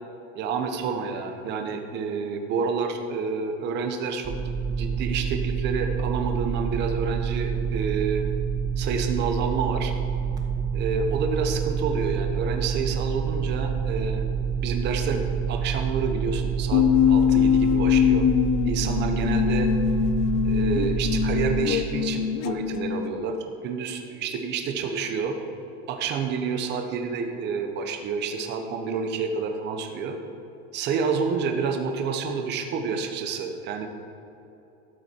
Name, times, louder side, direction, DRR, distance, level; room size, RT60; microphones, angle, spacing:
voice 1, 0.4-4.3 4.7-8.3 8.8-9.9 10.7-14.2 14.6-18.3 18.6-19.7 20.4-23.4 23.6-25.4 25.9-30.2 30.7-33.9, right 5 dB, 35° right, 5 dB, 0.9 m, -29 dB
sound 1, 4.2-21.6, right 7 dB, 10° right, 0.5 m, -27 dB
sound 2, 16.7-23.4, left 10 dB, 45° left, 0.5 m, -23 dB
13.0 x 7.6 x 4.4 m, 2.9 s
cardioid pair, 175°, 32 cm